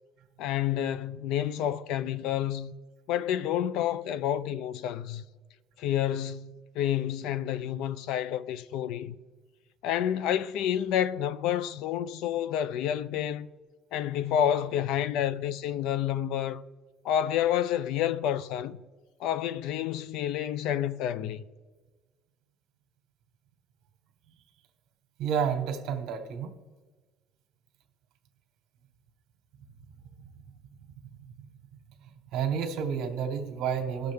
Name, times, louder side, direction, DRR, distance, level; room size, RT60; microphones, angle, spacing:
voice 1, 0.4-2.7 3.1-5.2 5.8-9.2 9.8-13.5 13.9-16.6 17.0-18.8 19.2-21.4, left 10 dB, 70° left, 0.4 m, -29 dB
voice 2, 25.2-26.5 32.3-34.1, right 7 dB, 60° right, 1.3 m, -30 dB
17.5 x 6.6 x 3.5 m
cardioid pair, 155°, 0 cm